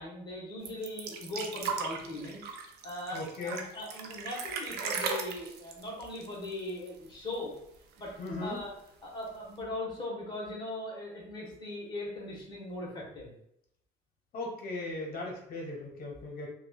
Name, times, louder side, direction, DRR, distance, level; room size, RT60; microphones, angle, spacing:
voice 1, 0.0-2.4 2.8-7.5 8.0-8.7 9.0-13.3, left 1 dB, 25° left, -4 dB, 1.2 m, -39 dB
sound 1, 0.6-7.1 7.3-7.4 7.7-8.5 9.3-9.4, right 5 dB, 75° right, 0.4 m, -37 dB
voice 2, 3.1-3.6 8.2-8.6 14.3-16.5, left 2 dB, 60° left, 0 dB, 1.0 m, -38 dB
3.0 x 2.3 x 2.2 m, 0.75 s
cardioid pair, 110°, 17 cm